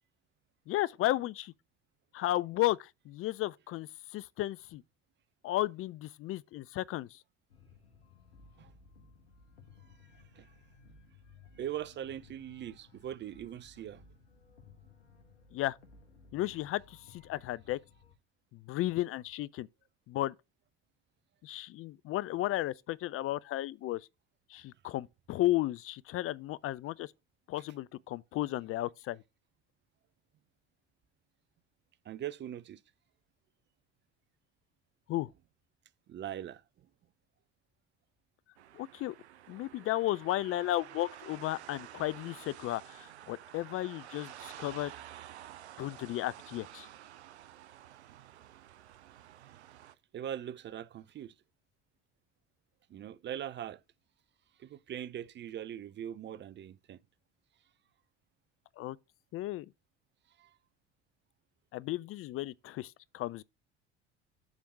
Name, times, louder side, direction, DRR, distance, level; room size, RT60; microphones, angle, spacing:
voice 1, 0.7-1.5 2.1-4.8 5.4-7.2 15.5-15.8 16.3-17.8 18.5-19.7 20.1-20.3 21.4-24.1 24.5-27.1 27.5-29.2 35.1-35.3 38.7-39.1 39.5-44.9 45.8-46.9 58.8-59.0 59.3-59.7 61.7-63.4, left 15 dB, 45° left, 0.4 m, -34 dB
sound 1, 7.5-18.1, left 4 dB, 90° left, 1.4 m, -59 dB
voice 2, 11.6-14.0 32.1-32.8 36.1-36.6 50.1-51.3 52.9-53.8 54.6-57.0 60.4-60.5, right 10 dB, 35° right, 0.5 m, -41 dB
sound 2, 38.6-50.0, right 12 dB, 90° right, 0.5 m, -51 dB
7.2 x 3.6 x 6.1 m
hypercardioid pair, 65°, 32 cm